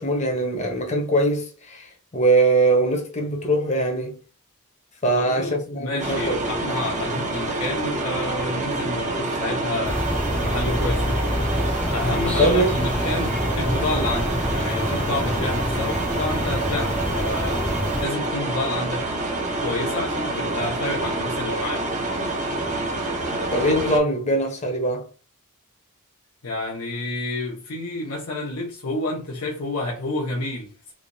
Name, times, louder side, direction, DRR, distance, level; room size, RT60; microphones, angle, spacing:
voice 1, 0.0-4.2 5.0-6.4 12.4-12.9 23.5-25.1, right 1 dB, 30° left, 0.8 m, -22 dB
voice 2, 5.2-11.4 11.9-17.7 18.0-19.1 19.6-21.9 26.4-30.9, left 2 dB, 80° left, 0.9 m, -29 dB
sound 1, 6.0-24.0, right 2 dB, 35° right, 0.7 m, -27 dB
sound 2, 9.8-18.1, left 1 dB, 5° left, 0.3 m, -27 dB
3.3 x 2.8 x 2.6 m
head